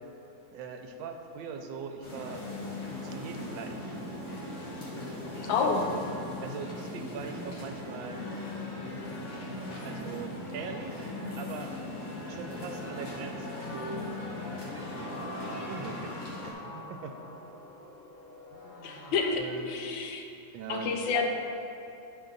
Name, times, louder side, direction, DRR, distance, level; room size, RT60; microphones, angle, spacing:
voice 1, 0.5-2.4 3.0-3.9 5.4-5.7 6.4-8.2 9.8-11.7 12.3-14.1 15.0-17.2 18.5-19.7 20.5-21.0, right 5 dB, 90° right, 5 dB, 1.4 m, -41 dB
sound 1, 2.0-16.5, left 2 dB, 45° left, 1.3 m, -39 dB
voice 2, 5.4-5.9 18.8-20.2 20.7-21.3, left 4 dB, 80° left, 3 dB, 1.4 m, -29 dB
sound 2, 12.8-19.4, left 2 dB, 65° left, 0.8 m, -47 dB
10.5 x 3.9 x 3.9 m, 2.8 s
omnidirectional pair, 2.1 m